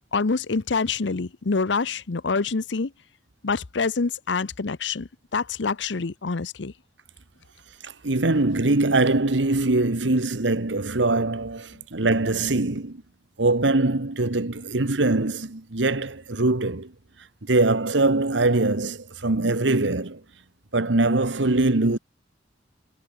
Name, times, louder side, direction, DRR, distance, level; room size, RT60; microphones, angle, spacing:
voice 1, 0.0-2.9 3.4-6.7, left 4 dB, 75° left, 0.8 m, -26 dB
voice 2, 7.8-13.0 13.4-16.9 17.4-20.2 20.7-22.0, right 2 dB, 85° right, 1.5 m, -22 dB
head